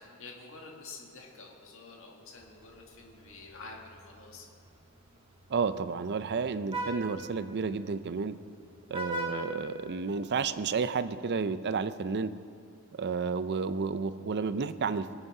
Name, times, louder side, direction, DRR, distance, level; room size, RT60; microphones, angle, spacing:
voice 1, 0.0-4.5, left 3 dB, 65° left, 1 dB, 1.8 m, -48 dB
Vehicle horn car horn honking, 2.4-10.5, right 1 dB, 25° right, 1.4 m, -43 dB
voice 2, 5.5-8.3 8.9-12.3 13.0-15.1, right 5 dB, 50° right, 13 dB, 0.5 m, -31 dB
21.5 x 8.1 x 4.9 m, 2.3 s
head